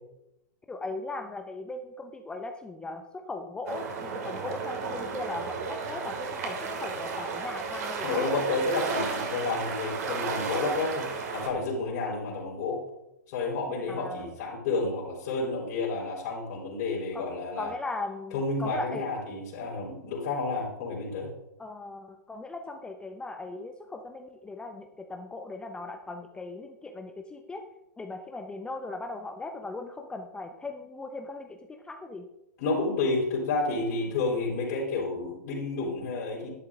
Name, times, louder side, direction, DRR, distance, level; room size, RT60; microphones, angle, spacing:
voice 1, 0.7-8.2 13.9-14.3 17.1-17.2 17.6-19.1 21.6-27.6 28.0-32.3, left 3 dB, 10° left, 5 dB, 0.8 m, -38 dB
sound 1, 3.7-11.5, right 4 dB, 60° right, 2.9 m, -33 dB
voice 2, 8.0-12.8 13.3-17.7 18.3-21.3 32.6-36.5, left 3 dB, 45° left, -6 dB, 4.1 m, -30 dB
11.5 x 10.5 x 3.7 m, 0.88 s
hypercardioid pair, 110°, 10 cm